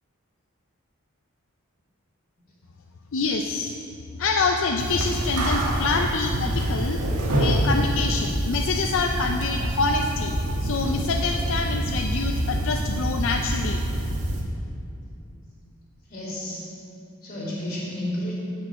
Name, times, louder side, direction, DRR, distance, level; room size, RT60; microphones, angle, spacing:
voice 1, 3.1-3.7 4.2-7.0 7.4-10.3 10.6-13.8, left 4 dB, 60° left, 3 dB, 0.5 m, -26 dB
sound 1, 4.8-14.4, right 1 dB, 85° right, 1.5 m, -26 dB
voice 2, 16.1-16.6 17.2-18.3, left 1 dB, 35° left, -7 dB, 2.5 m, -31 dB
9.6 x 5.3 x 7.6 m, 2.5 s
head